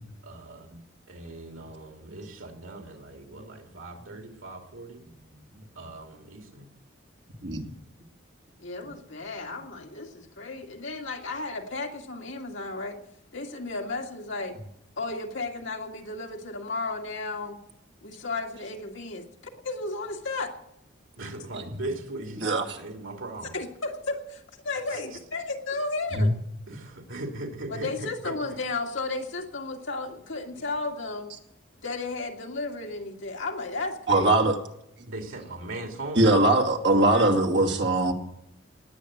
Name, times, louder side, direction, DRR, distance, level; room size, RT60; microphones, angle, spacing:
voice 1, 0.2-0.7 1.1-5.0 5.8-6.7 21.2-23.5 26.7-28.3 35.1-36.2, right 2 dB, 85° right, 3 dB, 2.8 m, -39 dB
voice 2, 8.6-13.0 13.3-14.6 15.0-17.6 18.0-19.2 19.6-20.5 23.5-26.4 27.7-31.3 31.8-34.5 37.1-37.4, left 3 dB, 70° left, 2 dB, 2.1 m, -34 dB
voice 3, 22.4-22.8 26.1-26.3 34.1-34.6 36.1-38.1, right 2 dB, 60° right, 3 dB, 2.3 m, -21 dB
19.0 x 8.6 x 7.9 m, 0.78 s
head